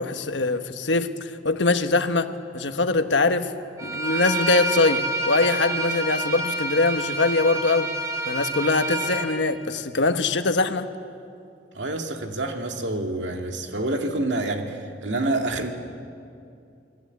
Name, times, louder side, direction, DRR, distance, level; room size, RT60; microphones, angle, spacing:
voice 1, 0.0-3.5 3.8-7.9 8.3-10.9, left 3 dB, 85° left, 8 dB, 1.3 m, -23 dB
Bowed string instrument, 3.8-9.3, right 1 dB, 20° right, 2.8 m, -28 dB
voice 2, 11.7-15.7, right 2 dB, 85° right, 4 dB, 2.3 m, -27 dB
28.0 x 21.0 x 8.2 m, 2.5 s
head